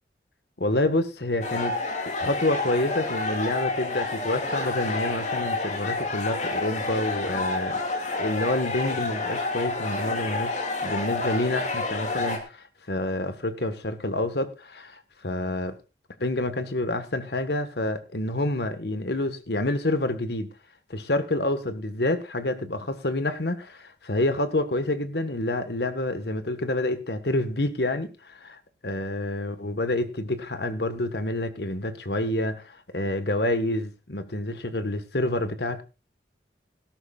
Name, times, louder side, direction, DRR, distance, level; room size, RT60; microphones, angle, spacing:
voice 1, 0.6-1.8 2.0-7.8 8.2-10.6 10.8-15.7 16.2-20.5 20.9-35.8, left 1 dB, 65° left, 1.5 m, -28 dB
sound 1, 1.4-12.4, left 2 dB, 40° left, 2.6 m, -29 dB
18.0 x 13.0 x 2.5 m
head